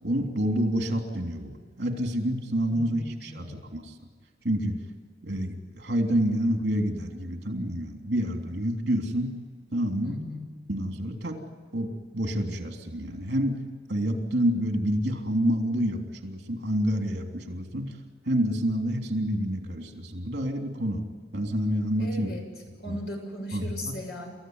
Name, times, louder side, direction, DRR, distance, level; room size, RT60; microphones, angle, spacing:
voice 1, 0.0-3.9 4.4-4.8 5.2-9.4 9.7-10.2 10.7-11.4 11.7-13.6 13.9-17.9 18.2-21.0 21.3-22.3 22.9-23.0 23.5-23.7, equal, 70° right, 3 dB, 3.4 m, -28 dB
voice 2, 2.7-3.6 10.0-10.5 22.0-22.5 22.8-24.3, left 1 dB, 70° left, 2 dB, 6.8 m, -37 dB
29.0 x 15.0 x 9.7 m, 1.6 s
head